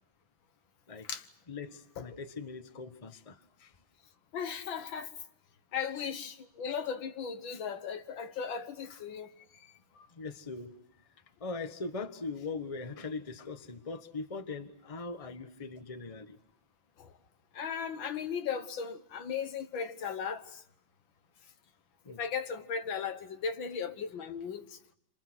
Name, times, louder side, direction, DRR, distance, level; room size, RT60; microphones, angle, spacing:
voice 1, 1.5-3.3 3.6-3.7 10.2-10.7 11.4-16.4 22.0-22.2, left 3 dB, 20° left, 1.2 m, -40 dB
voice 2, 4.3-5.1 5.7-9.3 10.0-10.1 17.0-17.1 17.5-20.6 22.2-24.8, left 6 dB, 75° left, 2.0 m, -37 dB
29.5 x 26.0 x 6.3 m
omnidirectional pair, 2.2 m